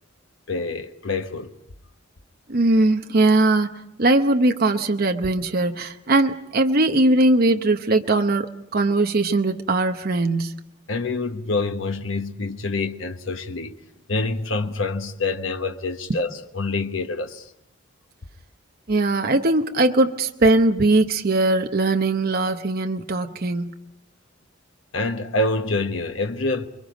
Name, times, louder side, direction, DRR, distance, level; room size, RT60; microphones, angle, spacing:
voice 1, 0.5-1.5 10.9-13.7 14.1-17.5 24.9-26.7, left 3 dB, 85° left, 1.1 m, -26 dB
voice 2, 2.5-3.7 4.0-8.5 8.7-10.6 18.9-23.8, right 2 dB, 50° right, 0.9 m, -20 dB
29.0 x 22.5 x 5.2 m
head